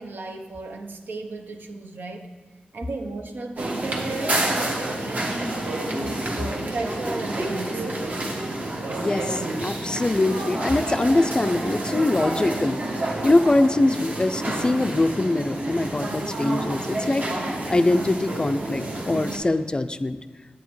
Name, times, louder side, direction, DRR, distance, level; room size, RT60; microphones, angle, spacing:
voice 1, 0.0-2.3 2.7-5.7 6.4-8.3, right 3 dB, 85° right, 5 dB, 0.8 m, -35 dB
sound 1, 3.6-19.4, right 1 dB, 50° right, 1.2 m, -29 dB
voice 2, 9.0-17.3 17.7-20.2, left 2 dB, 25° left, 11 dB, 0.3 m, -23 dB
9.3 x 8.7 x 3.1 m, 1.3 s
wide cardioid pair, 95°, 3 cm